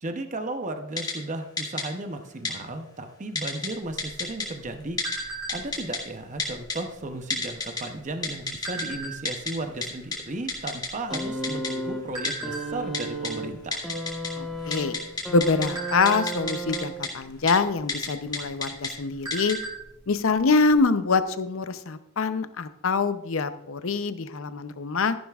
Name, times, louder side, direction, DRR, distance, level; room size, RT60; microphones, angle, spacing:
voice 1, 0.0-13.8, right 2 dB, 35° right, 6 dB, 0.7 m, -35 dB
Typing, 1.0-1.1 1.6-1.8 2.5-2.6 3.4-3.7 4.0-4.5 5.0-5.2 5.5-6.0 6.4-6.8 7.3-7.8 8.2-8.8 9.3-9.5 9.8-9.9 10.1-10.2 10.5-10.9 11.1-11.2 11.4-11.7 12.2-12.3 12.9-13.3 13.7-14.3 14.6-15.7 16.1-16.8 17.0-17.1 17.5-17.6 17.9-18.1 18.3-18.9 19.3-19.5, left 4 dB, 20° left, 2.1 m, -29 dB
sound 1, 3.9-5.9 6.3-6.6 6.9-7.2 7.9-9.5 10.1-10.2 10.4-11.7 12.1-12.6 13.2-13.4 13.7-13.9 14.4-14.9 15.3-16.8 17.8-17.9 18.4-18.5 18.8-19.9 20.2-20.3 20.7-20.8, right 3 dB, 20° right, 2.5 m, -36 dB
sound 2, 11.1-17.3 18.3-18.4, right 1 dB, ahead, 1.2 m, -34 dB
voice 2, 14.4-15.0 15.3-19.6 20.1-25.2, left 4 dB, 65° left, 11 dB, 0.6 m, -25 dB
14.0 x 10.5 x 2.4 m, 0.84 s
head